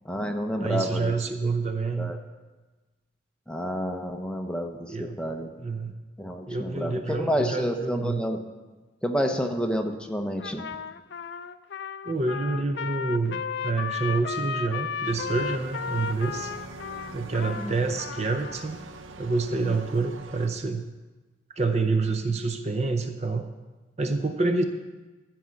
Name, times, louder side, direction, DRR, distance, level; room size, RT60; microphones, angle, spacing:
voice 1, 0.0-1.1 2.0-2.2 3.5-5.5 6.2-8.4 9.0-10.6 17.6-17.7, equal, 5° left, 4 dB, 0.7 m, -29 dB
voice 2, 0.6-2.1 4.9-5.9 6.5-8.2 12.1-16.5 17.1-18.8 19.2-20.8 21.6-23.5 24.0-24.6, right 3 dB, 35° right, 7 dB, 0.6 m, -27 dB
Trumpet, 10.4-18.7, left 6 dB, 60° left, 0.4 m, -34 dB
sound 1, 15.1-20.5, right 3 dB, 85° right, 0.7 m, -43 dB
13.5 x 4.6 x 7.6 m, 1.2 s
head